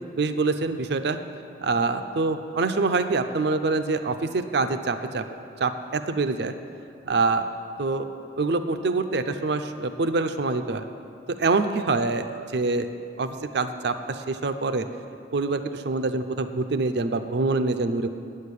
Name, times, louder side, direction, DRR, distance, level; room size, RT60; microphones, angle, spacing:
voice 1, 0.1-1.2 1.6-5.2 5.6-6.5 7.0-7.5 7.8-8.1 8.4-10.8 11.3-12.3 12.5-12.9 13.2-14.9 15.3-18.1, right 3 dB, 60° right, 9 dB, 0.5 m, -25 dB
9.5 x 6.5 x 8.4 m, 2.5 s
head